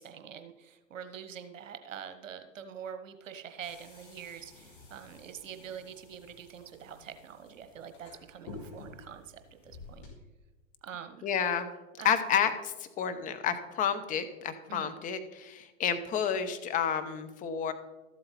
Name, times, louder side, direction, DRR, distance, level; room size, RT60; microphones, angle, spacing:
voice 1, 0.0-9.2 9.6-10.1 10.8-11.3 12.0-12.1 14.7-14.9, right 8 dB, 70° right, 8 dB, 1.1 m, -45 dB
sound 1, 3.6-10.1, left 3 dB, 40° left, 3.9 m, -51 dB
voice 2, 11.2-11.7 12.0-17.7, left 8 dB, 20° left, 9 dB, 0.8 m, -30 dB
13.5 x 7.8 x 4.1 m, 1.1 s
hypercardioid pair, 110°, 40 cm